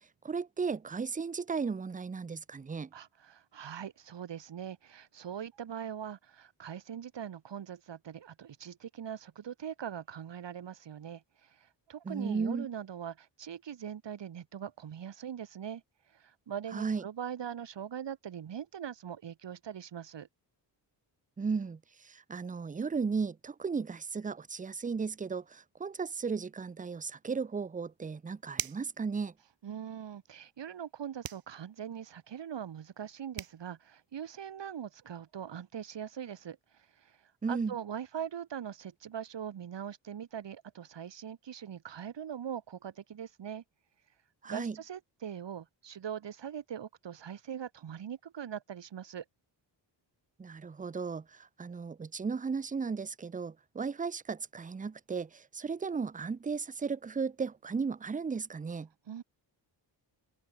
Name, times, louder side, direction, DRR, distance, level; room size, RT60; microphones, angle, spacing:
voice 1, 0.2-2.9 12.1-12.7 16.7-17.0 21.4-29.3 37.4-37.8 44.4-44.8 50.4-58.9, right 5 dB, 20° right, 0.6 m, -35 dB
voice 2, 2.9-15.8 16.1-20.3 29.6-37.2 37.5-43.6 44.5-49.2 59.1-59.2, right 9 dB, 65° right, 3.6 m, -42 dB
sound 1, 28.5-29.0 31.2-31.5 33.0-33.1 33.4-33.6, right 9 dB, 50° right, 1.0 m, -38 dB
cardioid pair, 105°, 45 cm